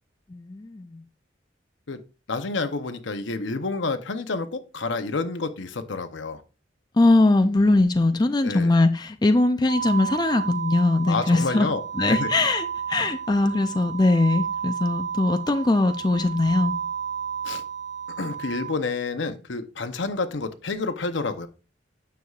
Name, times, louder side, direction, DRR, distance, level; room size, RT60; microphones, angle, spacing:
voice 1, 0.3-1.0 7.0-11.7 12.0-16.7, left 2 dB, 20° left, 0.4 m, -21 dB
voice 2, 2.3-6.4 8.4-8.7 11.1-12.3 17.4-17.6 18.2-21.5, left 3 dB, 70° left, 0.8 m, -29 dB
sound 1, 9.7-18.7, right 7 dB, 65° right, 0.7 m, -32 dB
9.3 x 6.8 x 2.4 m
head